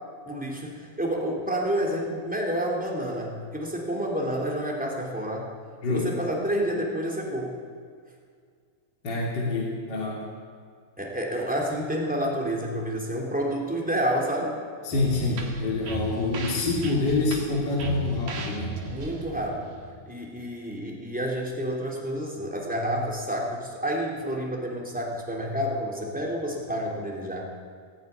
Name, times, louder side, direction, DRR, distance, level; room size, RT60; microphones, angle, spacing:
voice 1, 0.2-5.5 5.9-7.6 11.0-14.6 18.9-19.8 20.1-27.5, equal, ahead, -1 dB, 2.9 m, -29 dB
voice 2, 9.0-10.3 14.8-18.8, left 3 dB, 30° left, -2 dB, 3.2 m, -26 dB
sound 1, 14.9-20.5, right 3 dB, 55° right, 3.1 m, -36 dB
16.5 x 16.5 x 9.4 m, 2.1 s
omnidirectional pair, 4.1 m